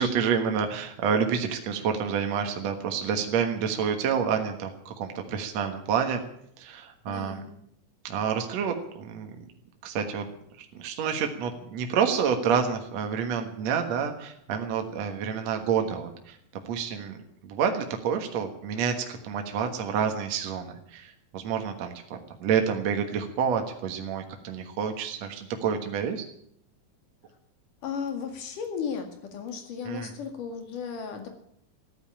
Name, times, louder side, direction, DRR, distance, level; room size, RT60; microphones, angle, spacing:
voice 1, 0.0-6.2 6.6-7.4 8.0-9.3 9.8-10.2 10.6-16.4 16.7-17.2 17.4-26.2 29.9-30.1, right 7 dB, 60° right, 4 dB, 2.4 m, -28 dB
voice 2, 7.1-7.5 27.8-31.3, left 6 dB, 70° left, 5 dB, 3.6 m, -35 dB
14.5 x 11.0 x 8.8 m, 0.70 s
omnidirectional pair, 3.9 m